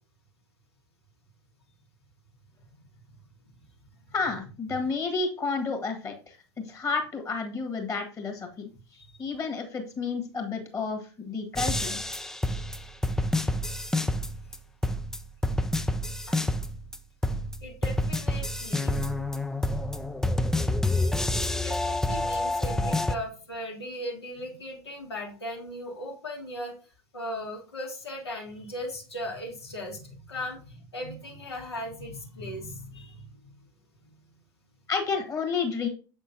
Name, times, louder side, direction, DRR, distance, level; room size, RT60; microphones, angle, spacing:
voice 1, 4.1-8.7 9.2-12.0 34.9-35.9, left 4 dB, 25° left, 4 dB, 1.6 m, -31 dB
sound 1, 11.6-14.6 14.8-17.0 17.2-23.2, left 1 dB, 5° left, 0.4 m, -28 dB
voice 2, 12.3-12.7 16.3-16.4 17.6-19.2 21.5-26.8 27.1-33.5 34.0-34.3, equal, 80° left, -1 dB, 1.7 m, -38 dB
7.3 x 6.3 x 2.7 m, 0.37 s
figure-of-eight pair, 80°, 14 cm